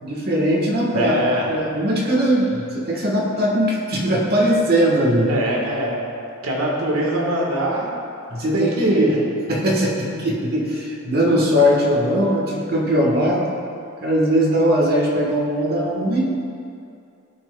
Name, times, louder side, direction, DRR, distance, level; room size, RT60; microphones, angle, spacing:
voice 1, 0.0-1.2 1.5-5.4 8.3-9.1 9.5-13.4 14.0-16.3, equal, 50° right, -2 dB, 1.2 m, -20 dB
voice 2, 0.9-1.5 5.3-6.0 6.4-7.9 8.5-9.2, right 1 dB, 85° right, -2 dB, 1.4 m, -22 dB
12.5 x 5.9 x 2.2 m, 2.5 s
head